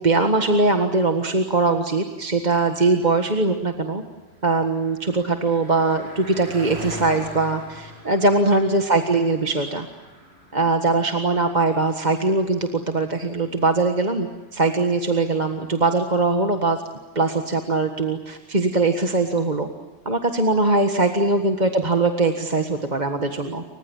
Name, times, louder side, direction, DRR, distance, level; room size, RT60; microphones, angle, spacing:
voice 1, 0.0-4.0 4.4-9.9 10.5-16.8 17.2-19.7 20.1-23.6, right 3 dB, 35° right, 5 dB, 1.7 m, -21 dB
Car passing by, 3.9-15.5, equal, 60° right, 8.1 m, -44 dB
29.5 x 25.0 x 7.2 m, 1.3 s
omnidirectional pair, 1.2 m